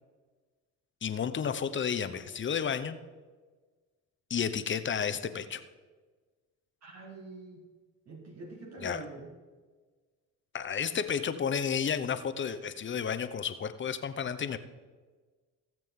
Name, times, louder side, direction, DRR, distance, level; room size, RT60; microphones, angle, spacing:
voice 1, 1.0-3.0 4.3-5.6 8.8-9.0 10.5-14.6, left 7 dB, 35° left, 10 dB, 0.8 m, -32 dB
voice 2, 6.8-7.7 8.1-9.3, right 3 dB, 55° right, 0 dB, 1.9 m, -45 dB
17.0 x 7.5 x 3.7 m, 1.4 s
supercardioid pair, 85°, 32 cm